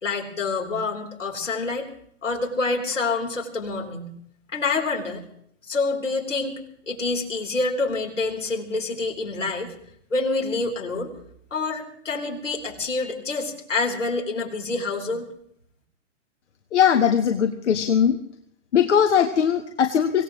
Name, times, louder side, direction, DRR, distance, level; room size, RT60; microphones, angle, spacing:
voice 1, 0.0-1.9 2.2-4.1 4.5-5.2 5.7-9.7 10.1-11.1 11.5-15.3, left 3 dB, 85° left, 0 dB, 3.9 m, -27 dB
voice 2, 16.7-18.2 18.7-20.2, left 8 dB, 70° left, 5 dB, 1.5 m, -20 dB
25.5 x 17.0 x 3.2 m, 0.68 s
hypercardioid pair, 115°, 36 cm